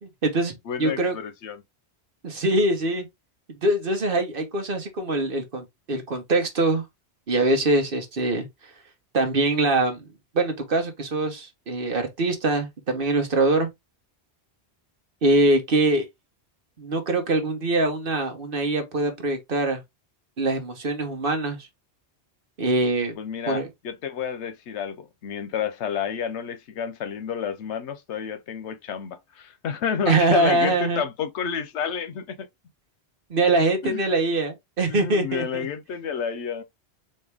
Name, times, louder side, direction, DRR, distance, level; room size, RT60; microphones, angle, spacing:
voice 1, 0.0-1.1 2.2-3.1 3.6-6.8 7.3-8.5 9.1-10.0 10.3-13.7 15.2-16.0 16.8-19.8 20.4-21.7 22.6-23.1 23.5-23.7 30.1-31.1 33.3-35.7, right 2 dB, 55° right, 1.2 m, -23 dB
voice 2, 0.7-1.6 23.2-32.5 33.8-34.1 34.9-36.6, left 7 dB, 85° left, 1.0 m, -30 dB
4.3 x 2.8 x 3.4 m
omnidirectional pair, 1.1 m